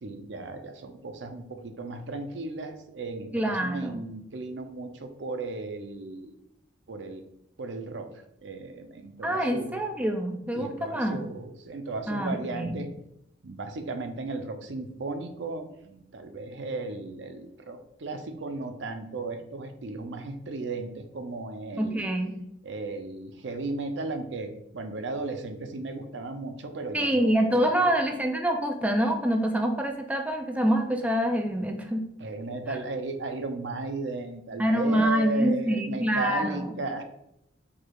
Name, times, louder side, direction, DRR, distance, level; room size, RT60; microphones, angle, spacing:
voice 1, 0.0-6.3 6.9-7.2 7.6-8.1 8.4-9.8 10.5-12.9 13.4-22.0 22.6-27.9 32.2-37.0, right 3 dB, 75° right, 6 dB, 0.6 m, -35 dB
voice 2, 3.3-4.0 9.2-11.2 12.1-12.8 21.8-22.4 26.9-32.0 34.6-36.7, equal, 10° right, 3 dB, 0.4 m, -26 dB
4.7 x 2.4 x 4.6 m, 0.79 s
head